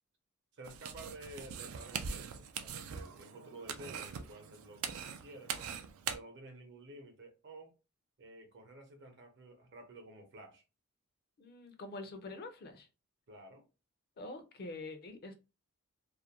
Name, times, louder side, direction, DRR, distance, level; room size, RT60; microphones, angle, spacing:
voice 1, 0.5-5.5 6.1-7.7 8.2-10.6 13.3-13.6, right 2 dB, 55° right, 0.7 m, -52 dB
sound 1, 0.6-6.2, right 7 dB, 80° right, 0.4 m, -42 dB
voice 2, 11.4-12.9 14.2-15.3, left 2 dB, 45° left, 0.4 m, -45 dB
2.4 x 2.1 x 2.8 m
head